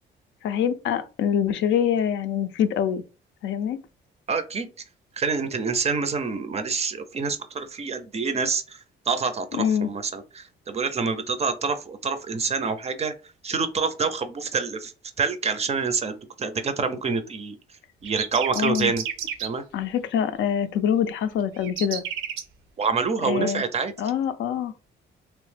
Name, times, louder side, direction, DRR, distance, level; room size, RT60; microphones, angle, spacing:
voice 1, 0.4-3.0 3.4-3.8 9.5-9.9 18.6-18.9 19.7-22.0 23.2-23.6 24.0-24.7, left 8 dB, 70° left, 0.4 m, -25 dB
voice 2, 4.3-4.7 5.2-8.8 9.1-13.1 13.4-14.9 15.2-17.6 18.0-19.0 19.4-19.6 22.8-23.9, right 5 dB, 35° right, 0.4 m, -27 dB
sound 1, 18.0-19.5 21.6-22.4, right 8 dB, 85° right, 0.5 m, -31 dB
2.9 x 2.0 x 3.2 m
cardioid pair, 90°, 20 cm